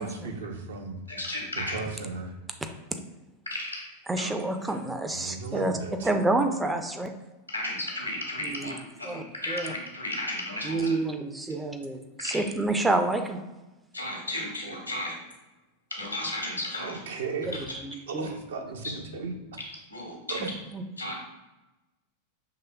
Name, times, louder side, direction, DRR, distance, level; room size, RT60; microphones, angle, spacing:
voice 1, 0.0-1.0 1.6-2.3 5.1-6.1 16.8-17.6 18.1-19.4 20.3-20.5, right 4 dB, 65° right, 3 dB, 0.6 m, -35 dB
voice 2, 1.1-1.7 3.5-4.3 7.5-10.9 12.2-12.4 13.9-15.1 15.9-17.0 18.8-18.9 19.9-20.5 21.0-21.2, left 1 dB, 85° left, -1 dB, 1.0 m, -34 dB
voice 3, 4.1-5.7 6.0-7.1 8.4-8.8 9.0-9.7 10.6-13.4 17.8-18.3 20.4-20.8, right 2 dB, 10° right, 6 dB, 0.4 m, -28 dB
5.8 x 3.1 x 2.2 m, 1.1 s
figure-of-eight pair, 90°, 0 cm